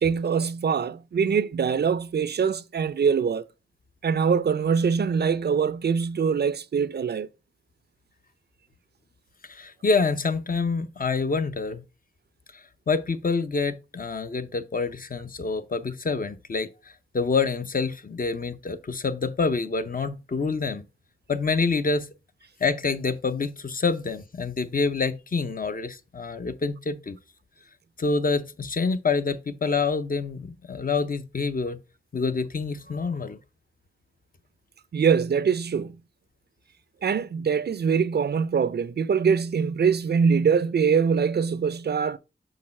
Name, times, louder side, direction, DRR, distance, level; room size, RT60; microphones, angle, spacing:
voice 1, 0.0-3.5 4.0-7.3 34.9-35.9 37.0-42.2, right 6 dB, 70° right, 0.4 m, -23 dB
voice 2, 9.4-11.8 12.5-20.8 21.3-22.1 22.6-27.2 28.0-31.8 32.1-33.4, left 4 dB, 55° left, 0.6 m, -27 dB
6.5 x 3.9 x 4.2 m
wide cardioid pair, 75°, 18 cm